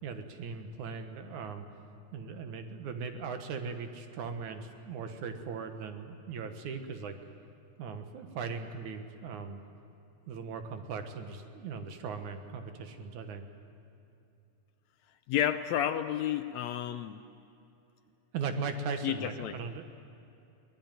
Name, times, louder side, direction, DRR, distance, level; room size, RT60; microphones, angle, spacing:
voice 1, 0.0-1.7 2.1-7.2 7.8-9.6 10.3-13.5 18.3-19.9, right 5 dB, 75° right, 6 dB, 2.7 m, -39 dB
voice 2, 15.3-17.2 19.0-19.6, left 10 dB, 75° left, 10 dB, 1.7 m, -31 dB
23.0 x 19.0 x 9.1 m, 2.7 s
omnidirectional pair, 3.6 m